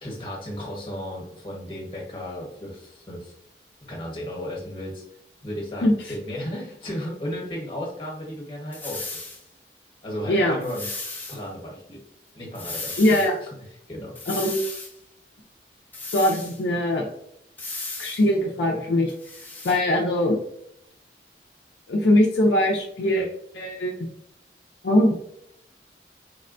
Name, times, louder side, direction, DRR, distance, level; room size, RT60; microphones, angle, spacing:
voice 1, 0.0-3.3 3.9-5.0 5.4-9.2 10.0-10.9 11.3-12.0 12.3-13.5 13.9-14.2, equal, 30° left, -3 dB, 1.0 m, -34 dB
sound 1, 8.7-9.4 10.6-11.4 12.5-13.3 14.1-14.9 15.9-16.6 17.6-18.2 19.1-19.8, left 3 dB, 10° left, 0.4 m, -35 dB
voice 2, 13.0-13.4 14.3-14.7 16.1-17.1 18.0-19.1 19.6-20.4 21.9-23.3 23.5-24.0 24.8-25.1, left 1 dB, 75° left, 0 dB, 0.5 m, -21 dB
3.5 x 2.1 x 2.5 m, 0.74 s
head